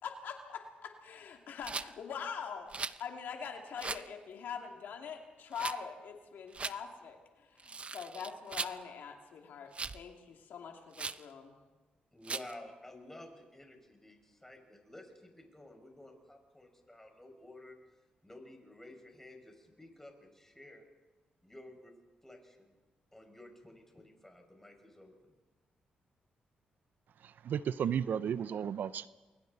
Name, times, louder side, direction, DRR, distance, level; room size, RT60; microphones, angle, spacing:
voice 1, 0.0-11.6, left 6 dB, 75° left, 2.5 m, -43 dB
Rattle, 1.6-1.9 2.7-3.0 3.8-4.1 5.5-5.8 6.5-6.8 7.6-8.8 9.7-10.0 10.9-11.2 12.2-12.5, right 4 dB, 40° right, 0.7 m, -39 dB
voice 2, 12.1-17.8 18.2-20.9 21.4-21.9 22.2-22.8 23.1-25.3, left 1 dB, 10° left, 5.8 m, -53 dB
voice 3, 27.2-29.1, right 8 dB, 70° right, 0.6 m, -34 dB
28.5 x 22.0 x 4.1 m
cardioid pair, 65°, 3 cm